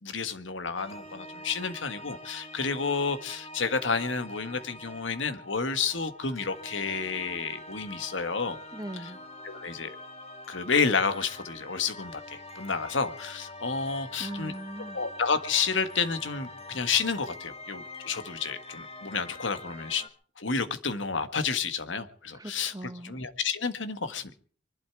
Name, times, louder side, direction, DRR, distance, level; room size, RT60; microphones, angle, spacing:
voice 1, 0.0-8.6 9.4-10.0 10.5-14.5 14.9-20.0 20.4-22.7 23.0-24.3, left 5 dB, 85° left, 1.7 m, -30 dB
sound 1, 0.8-20.1, left 1 dB, 35° left, 1.7 m, -45 dB
voice 2, 8.7-9.2 14.2-15.0 22.3-23.1, right 1 dB, 20° right, 1.2 m, -39 dB
24.0 x 12.0 x 4.7 m
head